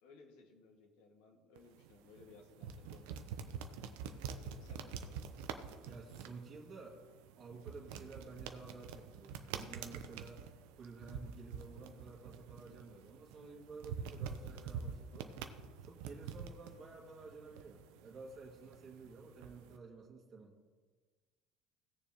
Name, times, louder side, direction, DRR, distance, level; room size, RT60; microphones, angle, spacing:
voice 1, 0.0-3.2 4.1-5.2, left 3 dB, 75° left, 2 dB, 1.9 m, -60 dB
sound 1, 1.6-19.8, right 7 dB, 75° right, 0.7 m, -47 dB
voice 2, 5.8-7.0 7.4-10.5 10.7-15.4 15.8-20.6, right 4 dB, 40° right, -3 dB, 2.2 m, -52 dB
17.0 x 7.0 x 3.0 m, 1.4 s
hypercardioid pair, 75°, 0 cm